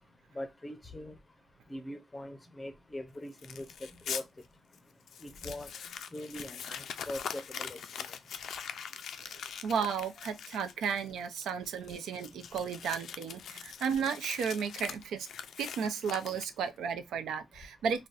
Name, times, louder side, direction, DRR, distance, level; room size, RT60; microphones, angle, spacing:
voice 1, 0.4-1.1 1.7-3.7 4.1-4.2 5.2-5.7 6.1-6.8 7.1-7.8, left 1 dB, 15° left, 0.5 m, -41 dB
Crumpling crinkling, 3.4-4.2 4.7-4.8 5.1-16.8, left 7 dB, 70° left, 0.3 m, -43 dB
voice 2, 9.6-15.3 15.6-18.1, right 6 dB, 90° right, 0.5 m, -34 dB
3.9 x 2.1 x 2.4 m
cardioid pair, 115°, 0 cm